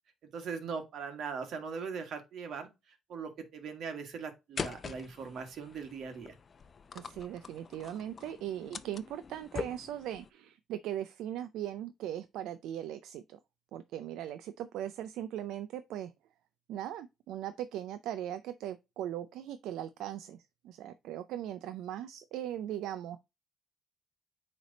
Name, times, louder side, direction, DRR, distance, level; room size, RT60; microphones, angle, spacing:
voice 1, 0.3-6.3, right 5 dB, 70° right, 1.7 m, -40 dB
sound 1, 4.6-10.3, left 5 dB, 45° left, 0.5 m, -43 dB
voice 2, 6.9-13.4 13.7-16.1 16.7-23.2, right 11 dB, 90° right, 0.4 m, -39 dB
8.8 x 3.3 x 4.0 m
cardioid pair, 90°, 0 cm